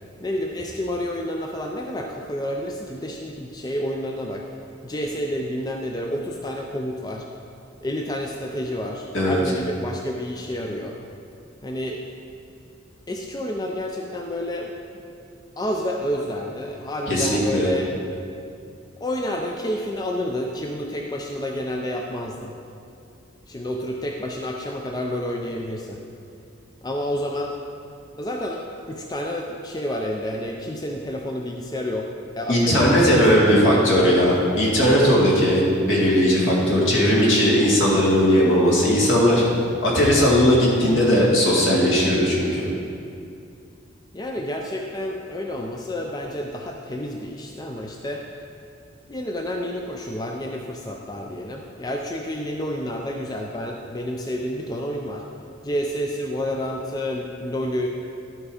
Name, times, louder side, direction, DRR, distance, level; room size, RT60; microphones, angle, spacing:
voice 1, 0.2-4.4 4.8-7.3 7.8-11.0 11.6-12.0 13.1-14.7 15.6-17.9 19.0-22.5 23.5-26.0 26.8-27.5 28.2-32.1 32.4-34.1 44.1-48.2 49.1-55.2 55.6-57.9, left 1 dB, 20° left, 1 dB, 0.4 m, -29 dB
voice 2, 17.1-17.7 32.5-39.4 39.8-42.6, equal, 75° left, -5 dB, 2.2 m, -18 dB
12.0 x 4.6 x 5.0 m, 2.5 s
head